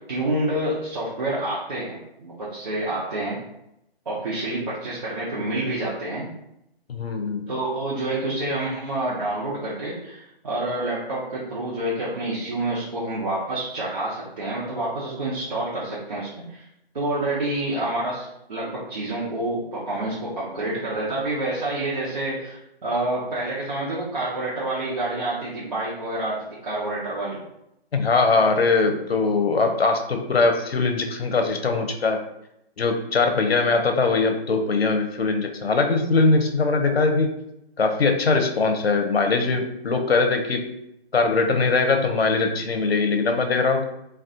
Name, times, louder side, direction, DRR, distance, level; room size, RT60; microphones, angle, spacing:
voice 1, 0.1-3.4 4.1-6.3 7.5-16.6 16.9-26.4 26.6-27.4, right 1 dB, 40° right, -7 dB, 0.7 m, -28 dB
voice 2, 6.9-7.5 27.9-32.2 32.8-37.3 37.8-40.7 41.1-43.8, left 3 dB, 75° left, 5 dB, 0.6 m, -21 dB
2.4 x 2.4 x 3.6 m, 0.81 s
figure-of-eight pair, 145°, 31 cm